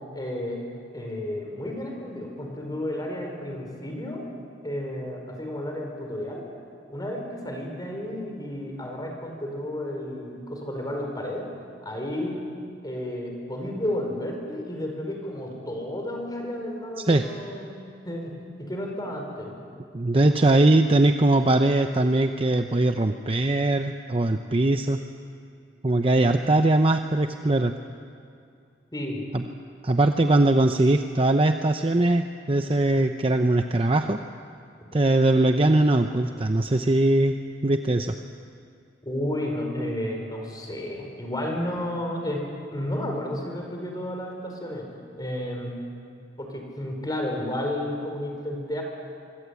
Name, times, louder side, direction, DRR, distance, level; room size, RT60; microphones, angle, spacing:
voice 1, 0.1-0.6 0.9-4.2 4.6-6.4 6.9-11.5 11.8-12.4 12.8-18.3 18.6-19.6 20.4-20.5 28.9-29.2 39.0-44.9 45.2-45.7 46.4-48.8, left 1 dB, 20° left, 1 dB, 5.1 m, -32 dB
voice 2, 19.9-25.0 25.8-27.7 29.3-29.4 29.8-34.2 34.9-37.3 37.6-38.2, right 2 dB, 30° right, 6 dB, 0.8 m, -21 dB
25.5 x 24.5 x 8.4 m, 2.3 s
head